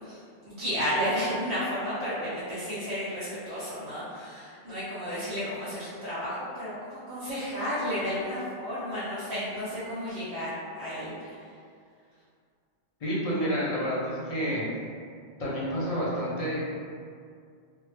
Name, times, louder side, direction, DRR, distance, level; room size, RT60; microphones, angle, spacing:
voice 1, 0.0-11.5, equal, 80° right, -12 dB, 1.0 m, -32 dB
voice 2, 13.0-14.6 15.4-16.6, equal, 40° left, -7 dB, 0.6 m, -29 dB
2.2 x 2.0 x 3.1 m, 2.2 s
omnidirectional pair, 1.1 m